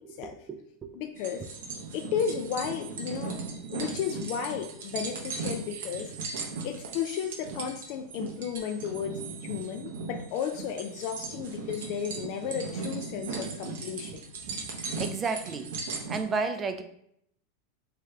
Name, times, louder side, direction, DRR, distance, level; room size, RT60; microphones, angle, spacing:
voice 1, 0.0-1.0 5.6-5.7 15.0-15.7 16.1-16.8, right 4 dB, 25° right, 8 dB, 0.4 m, -33 dB
voice 2, 0.9-1.4 1.9-3.4 3.7-14.2, left 8 dB, 55° left, 4 dB, 0.3 m, -34 dB
sound 1, 1.2-16.2, right 4 dB, 80° right, 0.8 m, -38 dB
4.8 x 3.1 x 2.3 m, 0.71 s
hypercardioid pair, 115°, 0 cm